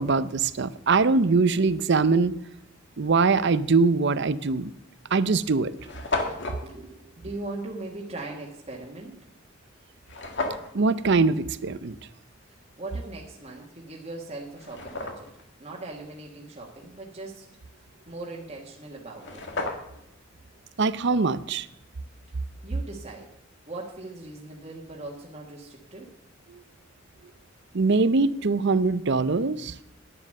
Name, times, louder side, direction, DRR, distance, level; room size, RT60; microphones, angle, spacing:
voice 1, 0.0-2.3 3.0-4.7 5.1-5.7 10.7-12.0 20.8-21.7 27.7-29.8, right 4 dB, 60° right, 16 dB, 0.6 m, -22 dB
sound 1, 4.4-4.5 5.2-5.3 5.4-5.5 5.7-6.6 10.1-10.7 13.6-13.7 14.3-15.4 18.8-18.9 19.1-20.1, left 2 dB, 60° left, 2.0 m, -32 dB
voice 2, 6.6-9.3 12.8-15.3 15.6-17.5 18.1-19.4 22.6-23.3 23.7-26.1, right 2 dB, 35° right, -3 dB, 1.7 m, -39 dB
11.0 x 9.8 x 6.6 m, 0.79 s
head